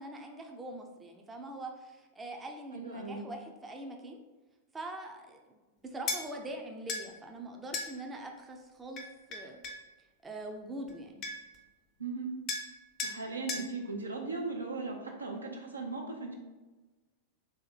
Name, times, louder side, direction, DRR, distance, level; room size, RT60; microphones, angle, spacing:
voice 1, 0.0-4.2 4.7-9.6 10.2-11.3, right 1 dB, 15° right, 3 dB, 0.5 m, -43 dB
voice 2, 2.7-3.3 12.0-12.4 13.0-16.3, right 3 dB, 80° right, 1 dB, 0.7 m, -38 dB
sound 1, 6.1-6.2 6.9-7.1 7.7-7.9 9.0-9.8 10.9-11.0 11.2-11.6 12.5-12.7 13.0-13.2 13.5-13.7, left 3 dB, 35° left, 0.7 m, -36 dB
3.6 x 3.3 x 4.3 m, 1.2 s
figure-of-eight pair, 90°, 0 cm